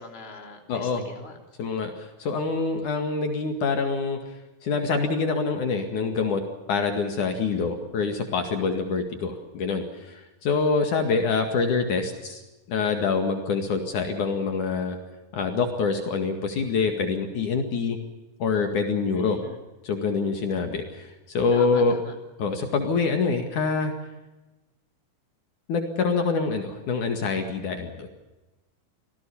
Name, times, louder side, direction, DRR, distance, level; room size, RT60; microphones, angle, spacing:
voice 1, 0.0-1.4 19.1-19.6 21.5-22.1, left 3 dB, 15° left, 3 dB, 3.2 m, -42 dB
voice 2, 0.7-1.0 1.6-4.2 4.6-6.4 6.7-12.4 12.7-15.0 15.3-18.0 18.4-19.4 19.8-22.0 22.4-23.9 25.7-28.1, left 4 dB, 60° left, 5 dB, 3.3 m, -25 dB
27.0 x 17.5 x 7.1 m, 1.1 s
omnidirectional pair, 4.2 m